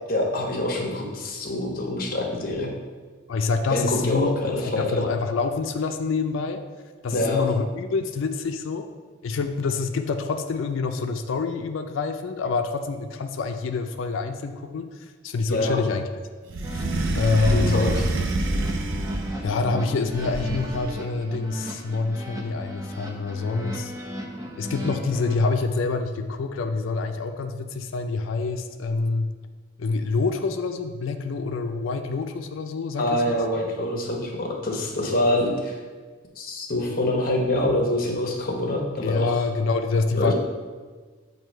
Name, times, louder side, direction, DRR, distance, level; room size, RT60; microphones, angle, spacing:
voice 1, 0.1-2.7 3.7-5.1 7.1-7.4 15.5-15.8 17.5-18.0 33.0-35.8 36.4-39.4 40.1-40.3, left 1 dB, 45° left, 1 dB, 0.9 m, -25 dB
voice 2, 3.3-4.4 4.6-6.6 7.0-8.9 9.2-14.9 15.2-16.0 16.7-16.8 17.2-18.0 19.4-23.9 24.6-29.3 29.8-33.4 39.0-40.3, left 4 dB, 75° left, 6 dB, 0.4 m, -26 dB
sound 1, 16.5-19.5 20.1-21.0, right 2 dB, 75° right, 0.5 m, -27 dB
sound 2, 16.6-25.4, equal, 15° right, 0.6 m, -35 dB
7.8 x 2.7 x 4.4 m, 1.4 s
head